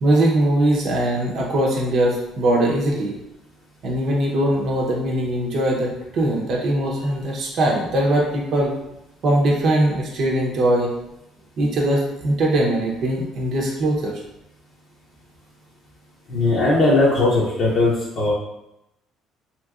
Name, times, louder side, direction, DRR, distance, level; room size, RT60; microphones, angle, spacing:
voice 1, 0.0-3.2 3.8-8.7 9.2-10.9 11.6-14.2, right 1 dB, 60° right, -2 dB, 0.7 m, -21 dB
voice 2, 16.3-18.3, left 2 dB, 60° left, -6 dB, 0.7 m, -18 dB
2.9 x 2.9 x 2.4 m, 0.86 s
supercardioid pair, 85°, 0 cm